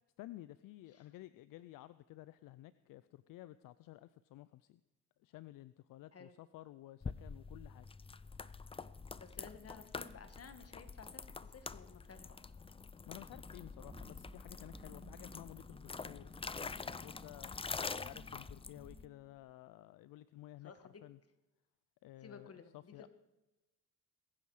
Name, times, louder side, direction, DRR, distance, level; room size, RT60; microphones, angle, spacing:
voice 1, 0.2-4.8 5.2-7.9 13.1-16.3 16.6-17.5 18.0-21.2 22.0-23.1, left 15 dB, 70° left, 15 dB, 0.6 m, -54 dB
sound 1, 7.0-19.1, left 4 dB, 15° left, 0.5 m, -46 dB
voice 2, 9.2-12.4 20.6-21.0 22.2-23.1, left 5 dB, 40° left, 9 dB, 1.7 m, -55 dB
sound 2, 13.3-19.5, right 2 dB, 10° right, 1.5 m, -59 dB
22.0 x 9.6 x 4.9 m, 1.0 s
supercardioid pair, 70°, 35 cm